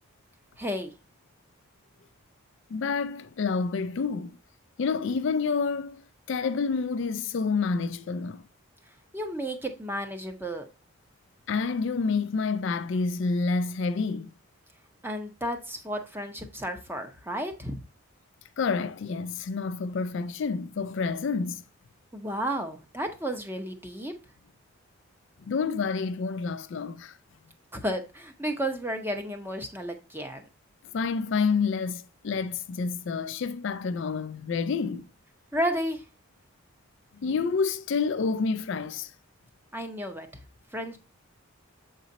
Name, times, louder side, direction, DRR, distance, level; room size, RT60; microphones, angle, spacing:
voice 1, 0.6-0.9 9.1-10.7 15.0-17.8 22.1-24.1 27.7-30.4 35.5-36.0 39.7-40.4 40.7-41.0, equal, 10° right, 0.8 m, -32 dB
voice 2, 2.7-4.4 4.8-8.4 11.5-14.3 18.6-21.6 25.4-27.2 30.9-35.1 37.2-39.1, left 4 dB, 55° left, 0.4 m, -28 dB
7.5 x 4.0 x 4.0 m
head